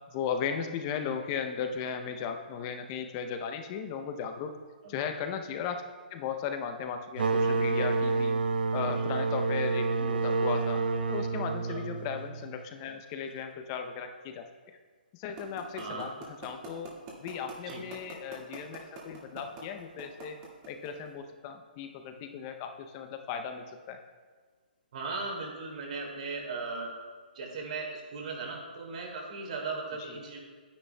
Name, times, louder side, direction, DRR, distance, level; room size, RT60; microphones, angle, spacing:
voice 1, 0.1-4.5 4.9-5.8 6.1-8.4 8.7-10.8 11.1-14.5 15.1-20.4 20.7-24.0 30.0-30.2, left 7 dB, 25° left, 6 dB, 0.6 m, -36 dB
sound 1, 7.2-12.6, right 3 dB, 65° right, 0.7 m, -29 dB
sound 2, 15.4-21.1, right 3 dB, 25° right, 1.8 m, -43 dB
voice 2, 15.8-16.1 17.7-17.8 24.9-26.9 27.3-30.4, right 3 dB, 50° right, -1 dB, 2.4 m, -37 dB
10.5 x 9.8 x 2.2 m, 1.5 s
hypercardioid pair, 155°, 5 cm